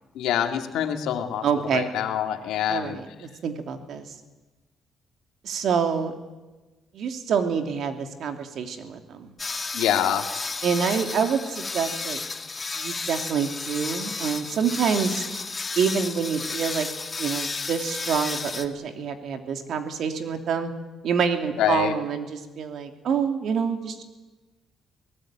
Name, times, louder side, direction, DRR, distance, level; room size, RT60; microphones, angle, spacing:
voice 1, 0.1-1.5 1.7-3.0 9.7-10.3 21.6-21.9, left 10 dB, 90° left, 5 dB, 2.2 m, -25 dB
voice 2, 1.4-1.9 2.7-4.0 5.4-6.1 6.9-9.3 10.6-12.2 12.8-15.2 15.8-16.9 17.2-20.7 21.0-24.0, right 6 dB, 70° right, 6 dB, 3.0 m, -27 dB
sound 1, 9.4-18.7, left 3 dB, 25° left, 2.1 m, -32 dB
24.0 x 18.5 x 9.2 m, 1.2 s
cardioid pair, 90°, 0 cm